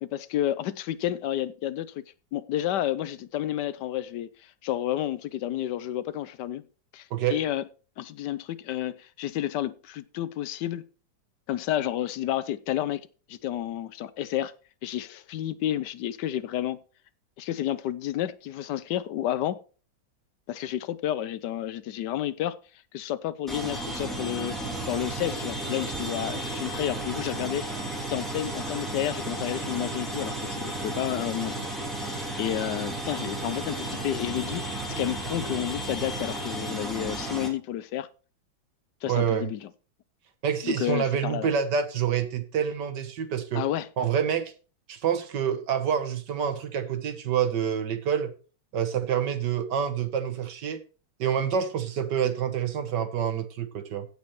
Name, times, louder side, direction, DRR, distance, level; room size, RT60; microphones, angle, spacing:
voice 1, 0.0-1.9 2.3-6.6 6.9-7.6 8.0-10.8 11.5-14.5 14.8-16.8 17.4-19.6 20.5-22.6 22.9-24.6 24.8-27.7 28.1-31.7 32.0-38.1 39.0-39.7 40.6-41.5 43.5-43.9, left 12 dB, 70° left, 1.1 m, -31 dB
sound 1, 23.5-37.5, right 1 dB, ahead, 2.6 m, -33 dB
voice 2, 39.0-39.5 40.4-43.6 44.0-44.5 44.9-48.3 48.7-50.8 51.2-54.1, right 8 dB, 65° right, 1.6 m, -27 dB
16.0 x 6.6 x 3.1 m
omnidirectional pair, 2.1 m